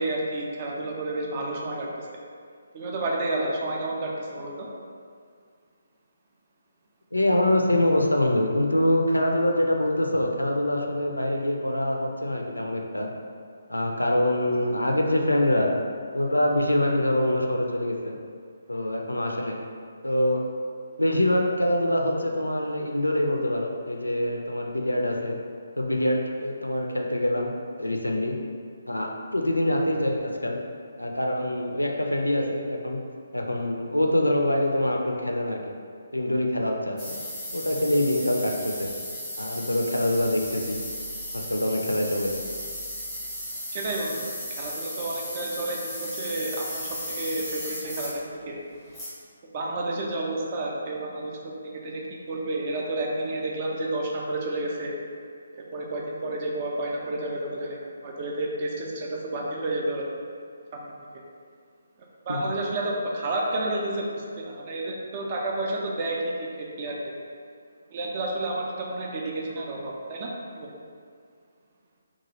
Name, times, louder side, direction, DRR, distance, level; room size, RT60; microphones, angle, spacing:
voice 1, 0.0-1.9 2.7-4.7 43.7-44.3 44.6-48.1 48.5-48.6 49.5-51.4 51.8-52.0 52.3-54.9 55.5-60.1 60.7-60.9 62.3-64.1 64.4-66.5 66.8-67.0 67.9-70.3 70.6-70.7, right 2 dB, 30° right, -2 dB, 0.4 m, -30 dB
voice 2, 7.1-13.1 13.7-15.7 16.1-18.1 18.7-19.6 20.0-20.4 21.0-25.4 25.8-28.3 28.9-30.6 31.0-33.0 33.3-35.7 36.1-37.2 37.5-38.9 39.4-40.8 41.3-42.3 62.3-62.4, left 1 dB, 85° left, 1 dB, 0.3 m, -25 dB
sound 1, 37.0-48.2 48.7-49.1, equal, ahead, 0.7 m, -35 dB
2.9 x 2.3 x 2.8 m, 2.1 s
figure-of-eight pair, 140°, 0 cm